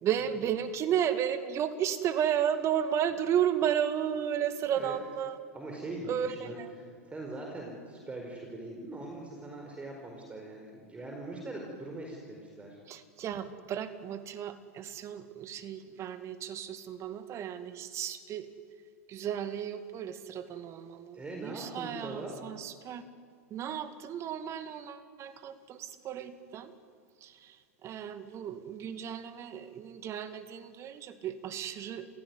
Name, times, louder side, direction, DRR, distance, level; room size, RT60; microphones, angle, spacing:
voice 1, 0.0-5.4 6.1-6.7 12.9-18.5 19.1-23.0 23.5-26.7 27.2-32.1, right 9 dB, 35° right, 10 dB, 2.2 m, -33 dB
voice 2, 5.5-6.6 7.1-12.8 21.1-22.3, right 2 dB, 15° right, 1 dB, 4.7 m, -41 dB
28.0 x 16.5 x 9.8 m, 2.2 s
hypercardioid pair, 95°, 8 cm